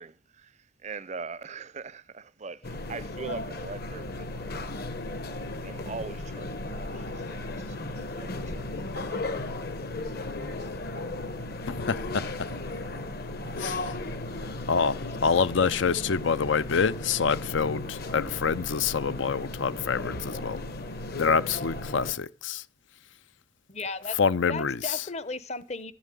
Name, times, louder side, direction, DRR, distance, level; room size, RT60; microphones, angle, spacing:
voice 1, 0.0-4.6 5.6-8.7 9.0-9.2, right 4 dB, 35° right, 0.5 m, -42 dB
sound 1, 2.6-22.1, left 2 dB, 50° left, 1.2 m, -35 dB
voice 2, 11.7-12.2 13.6-14.0 14.7-20.6 21.1-22.6 24.2-25.1, left 5 dB, 70° left, 0.5 m, -26 dB
voice 3, 23.7-24.2 24.5-25.9, left 3 dB, 35° left, 0.8 m, -35 dB
13.5 x 7.1 x 9.1 m
head